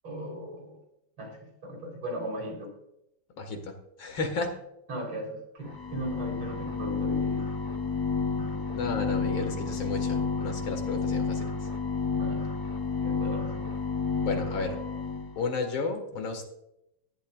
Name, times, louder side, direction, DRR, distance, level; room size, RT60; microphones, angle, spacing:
voice 1, 0.0-0.8 1.2-2.7 4.9-7.5 8.4-8.6 12.1-12.4 13.0-13.6, right 1 dB, 85° right, 0 dB, 4.6 m, -38 dB
voice 2, 3.4-4.5 8.7-11.5 14.2-14.8 15.4-16.4, left 3 dB, 75° left, 5 dB, 2.7 m, -32 dB
sound 1, 5.7-15.3, left 5 dB, 25° left, 0.5 m, -30 dB
18.0 x 12.0 x 2.4 m, 0.82 s
omnidirectional pair, 2.2 m